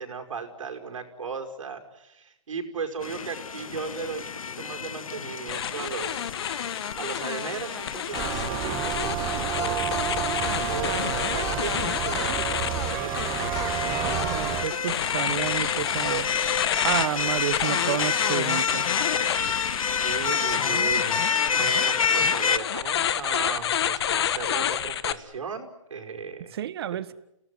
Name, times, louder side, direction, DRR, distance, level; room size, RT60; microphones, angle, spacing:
voice 1, 0.0-4.3 4.6-6.2 7.0-10.0 10.7-13.6 20.0-26.6, right 5 dB, 70° right, 5 dB, 5.4 m, -36 dB
sound 1, 3.0-22.6, left 6 dB, 80° left, 1.1 m, -30 dB
sound 2, 5.5-25.1, left 10 dB, 50° left, 1.4 m, -29 dB
sound 3, 8.1-14.6, right 11 dB, 20° right, 1.5 m, -30 dB
voice 2, 14.2-16.3 16.8-18.8 26.5-27.1, right 11 dB, 45° right, 15 dB, 1.6 m, -30 dB
29.5 x 18.0 x 9.8 m, 0.81 s
hypercardioid pair, 150°, 17 cm